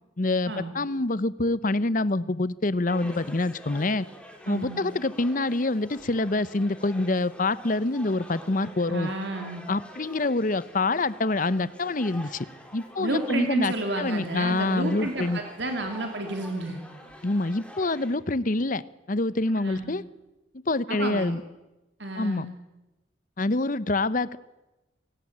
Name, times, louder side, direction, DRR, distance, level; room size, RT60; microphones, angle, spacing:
voice 1, 0.2-4.1 4.5-9.1 9.7-12.5 12.7-15.4 17.2-20.0 20.7-21.4 22.2-22.5 23.4-24.4, left 2 dB, 40° left, 17 dB, 0.8 m, -26 dB
sound 1, 2.9-18.1, equal, 5° left, 3.4 m, -46 dB
voice 2, 4.5-4.9 8.9-9.6 13.0-16.8 19.6-19.9 20.9-21.4 22.0-22.5, right 2 dB, 60° right, 4 dB, 2.8 m, -31 dB
27.0 x 18.5 x 8.7 m, 1.0 s
head